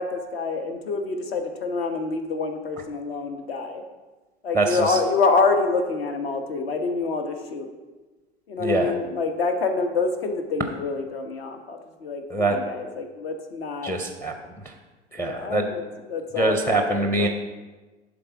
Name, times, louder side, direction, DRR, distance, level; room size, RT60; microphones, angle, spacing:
voice 1, 0.0-3.8 4.4-7.7 8.5-13.9 15.2-17.3, left 4 dB, 60° left, 6 dB, 1.2 m, -27 dB
voice 2, 4.5-5.0 8.6-8.9 12.3-12.6 13.8-14.3 14.6-14.7 15.1-15.7 16.4-17.3, right 2 dB, 5° left, 4 dB, 0.6 m, -24 dB
11.0 x 3.7 x 4.8 m, 1.2 s
figure-of-eight pair, 85°, 34 cm